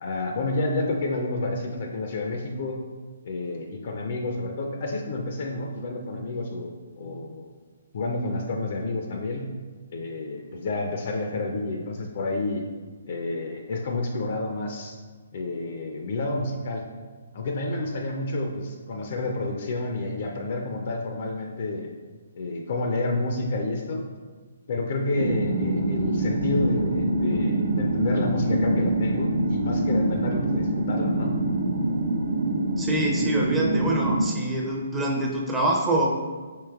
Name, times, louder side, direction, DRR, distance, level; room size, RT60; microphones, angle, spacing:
voice 1, 0.0-2.8 3.2-6.7 7.0-7.5 7.9-9.5 9.9-12.6 13.1-14.9 15.3-16.9 17.3-21.9 22.3-24.1 24.7-31.4, left 2 dB, 50° left, 2 dB, 0.4 m, -29 dB
sound 1, 25.2-34.3, right 1 dB, 70° right, 0.5 m, -25 dB
voice 2, 32.8-36.1, right 1 dB, 10° right, -3 dB, 0.5 m, -25 dB
4.6 x 3.0 x 2.3 m, 1.4 s
figure-of-eight pair, 135°, 0 cm